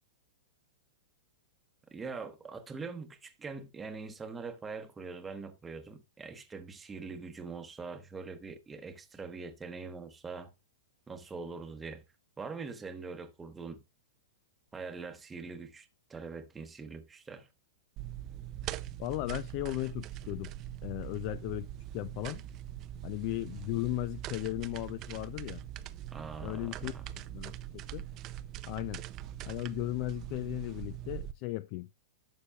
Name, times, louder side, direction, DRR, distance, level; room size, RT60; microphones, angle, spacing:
voice 1, 1.9-10.5 11.1-12.0 12.4-13.8 14.7-17.5 26.1-27.0, right 4 dB, 10° right, 1.0 m, -43 dB
sound 1, 18.0-31.3, right 12 dB, 35° right, 0.5 m, -42 dB
voice 2, 19.0-20.5 20.8-21.7 21.9-22.4 23.0-25.6 26.4-28.0 28.6-29.0 29.5-31.9, left 19 dB, 45° left, 0.4 m, -36 dB
11.5 x 6.8 x 2.4 m
hypercardioid pair, 140°, 0 cm